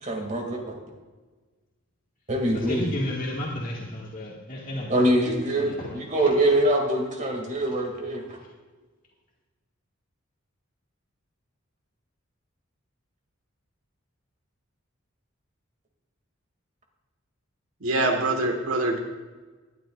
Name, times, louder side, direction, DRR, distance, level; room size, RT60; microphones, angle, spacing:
voice 1, 0.0-0.6 2.3-2.9 4.9-8.2, right 1 dB, 35° right, 1 dB, 2.4 m, -24 dB
voice 2, 2.5-5.1 5.6-6.0 8.4-8.5, left 1 dB, 40° left, -4 dB, 2.0 m, -32 dB
voice 3, 17.8-19.0, right 2 dB, 90° right, 4 dB, 1.6 m, -24 dB
19.5 x 11.5 x 2.5 m, 1.3 s
head